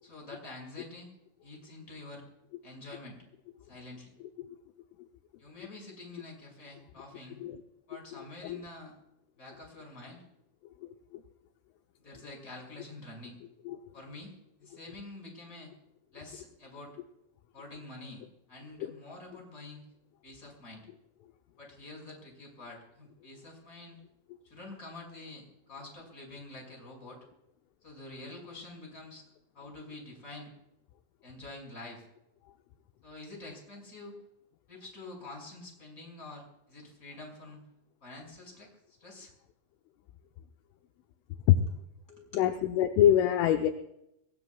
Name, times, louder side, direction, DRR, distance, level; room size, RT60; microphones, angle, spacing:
voice 1, 0.0-1.1 1.4-2.2 2.6-3.2 3.7-4.1 5.4-7.4 7.9-8.9 9.4-10.2 12.0-13.4 13.9-14.3 14.6-15.7 16.1-17.0 17.5-19.8 20.2-20.8 21.6-24.0 24.4-27.2 27.8-29.2 29.5-30.5 31.2-32.0 33.0-34.2 34.7-37.6 38.0-38.7 39.0-39.3 42.1-42.4, left 2 dB, 15° left, 0 dB, 5.7 m, -47 dB
voice 2, 8.1-8.6 11.1-11.2 13.7-13.8 18.8-18.9 41.5-41.6 42.3-43.7, left 11 dB, 80° left, 5 dB, 3.1 m, -25 dB
23.0 x 20.0 x 2.4 m, 0.82 s
omnidirectional pair, 6.0 m